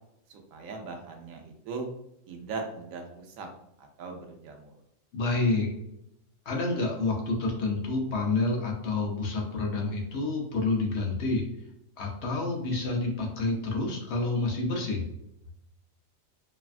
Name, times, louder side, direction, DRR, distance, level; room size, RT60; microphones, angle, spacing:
voice 1, 0.3-1.9 2.3-3.5 3.8-4.7, right 4 dB, 85° right, 3 dB, 1.0 m, -39 dB
voice 2, 5.1-5.7 6.5-11.4 12.0-15.0, left 3 dB, 60° left, 0 dB, 0.8 m, -28 dB
3.3 x 2.2 x 2.3 m, 0.82 s
omnidirectional pair, 1.4 m